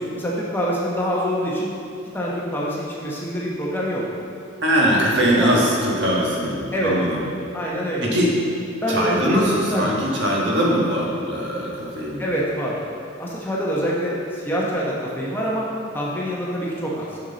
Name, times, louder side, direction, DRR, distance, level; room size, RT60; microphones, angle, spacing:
voice 1, 0.0-1.7 2.1-4.0 4.8-5.0 5.4-5.5 6.7-6.9 7.5-8.1 8.8-9.4 9.7-9.9 12.2-12.8 13.2-15.7 15.9-17.2, equal, 10° left, -5 dB, 0.9 m, -25 dB
voice 2, 4.6-7.2 8.0-8.3 8.9-12.2, equal, 60° right, -4 dB, 1.4 m, -21 dB
7.1 x 6.4 x 4.0 m, 2.7 s
head